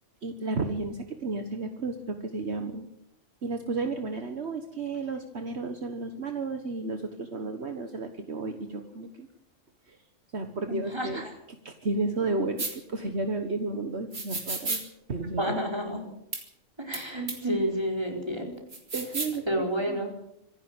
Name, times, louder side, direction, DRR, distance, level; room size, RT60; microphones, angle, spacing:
voice 1, 0.2-2.9 3.4-9.3 9.9-10.0 10.3-14.8 15.1-15.6 18.9-20.0, right 3 dB, 60° right, 6 dB, 1.7 m, -33 dB
voice 2, 10.7-11.3 15.4-16.0 16.8-18.4 19.5-20.1, equal, 20° right, 2 dB, 4.7 m, -30 dB
sound 1, 12.6-12.7 14.1-14.8 16.3-16.4 16.9-17.0 17.3-17.4 18.7-19.4, right 3 dB, 85° right, 4.2 m, -32 dB
26.0 x 11.5 x 8.9 m, 0.80 s
omnidirectional pair, 1.3 m